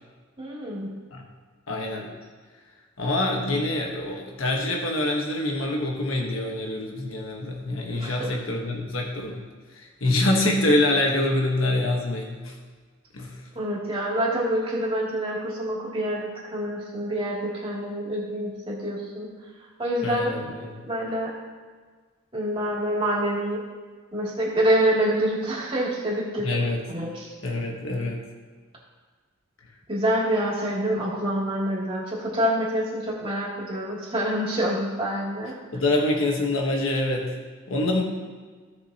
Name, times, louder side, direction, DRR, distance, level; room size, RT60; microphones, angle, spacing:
voice 1, 0.4-0.9 7.9-8.3 13.5-19.3 19.8-20.4 20.8-21.3 22.3-23.6 24.1-26.5 26.9-27.3 29.9-35.5, right 1 dB, 25° right, -6 dB, 2.5 m, -26 dB
voice 2, 1.7-2.1 3.0-9.4 9.7-12.5 13.1-13.4 20.0-20.9 26.4-26.8 27.4-28.2 35.7-37.3 37.7-38.0, left 2 dB, 80° left, 0 dB, 1.3 m, -25 dB
16.5 x 6.5 x 2.9 m, 1.5 s
head